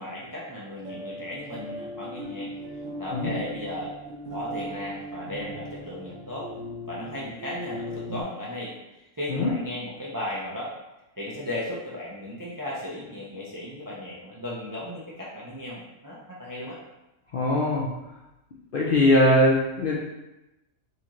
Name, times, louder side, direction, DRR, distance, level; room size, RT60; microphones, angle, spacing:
voice 1, 0.0-2.5 3.0-3.9 4.3-6.5 6.9-10.7 11.2-16.8, left 1 dB, 35° right, -6 dB, 0.3 m, -36 dB
sound 1, 0.8-8.2, equal, 65° right, 1.1 m, -38 dB
voice 2, 17.3-17.9 18.7-20.0, left 1 dB, 60° left, -4 dB, 0.5 m, -21 dB
4.1 x 2.6 x 2.9 m, 0.98 s
omnidirectional pair, 1.4 m